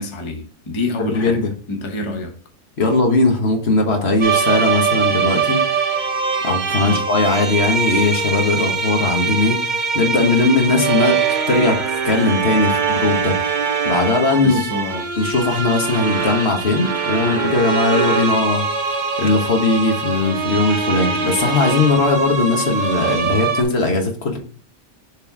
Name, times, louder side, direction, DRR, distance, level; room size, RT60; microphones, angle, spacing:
voice 1, 0.0-1.4 1.7-2.3 6.8-7.1 14.4-15.1, left 2 dB, 25° left, 0.9 m, -27 dB
voice 2, 1.0-1.5 2.8-5.6 6.4-11.2 11.5-11.8 12.0-13.3 13.8-14.6 15.2-24.4, left 3 dB, 60° left, 1.4 m, -19 dB
sound 1, 4.2-23.6, right 5 dB, 45° right, 0.8 m, -22 dB
6.5 x 3.7 x 4.5 m
omnidirectional pair, 1.2 m